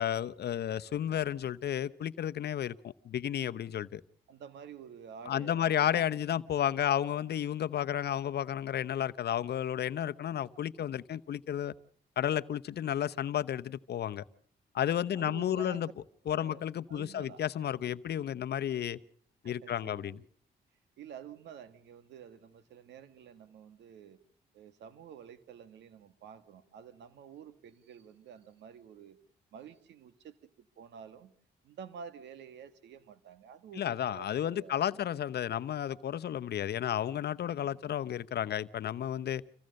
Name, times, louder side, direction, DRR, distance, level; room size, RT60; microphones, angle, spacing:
voice 1, 0.0-4.0 5.3-11.7 12.2-14.2 14.7-15.9 16.3-19.0 19.4-20.2 33.8-39.4, left 10 dB, 70° left, 14 dB, 0.8 m, -32 dB
voice 2, 4.3-6.1 15.1-15.9 16.3-17.4 19.4-20.3 21.0-24.2 24.5-29.2 29.5-31.3 31.6-35.0 37.4-37.8, right 7 dB, 90° right, 14 dB, 1.5 m, -50 dB
26.5 x 16.0 x 6.5 m, 0.62 s
cardioid pair, 65°, 18 cm